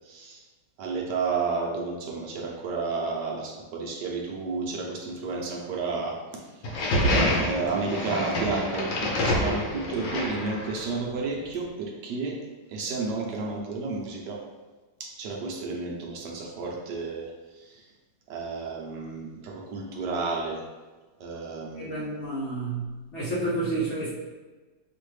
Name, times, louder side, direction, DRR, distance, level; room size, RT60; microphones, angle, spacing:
voice 1, 0.1-0.4 0.8-6.2 7.4-12.4 12.7-14.4 15.0-17.3 17.7-17.8 18.3-20.6 21.2-22.1, right 4 dB, 70° right, -1 dB, 1.2 m, -31 dB
sound 1, 6.6-11.0, left 1 dB, 75° left, 1.6 m, -27 dB
voice 2, 21.7-24.1, right 2 dB, 50° left, -7 dB, 1.0 m, -30 dB
6.2 x 2.5 x 3.2 m, 1.2 s
omnidirectional pair, 2.0 m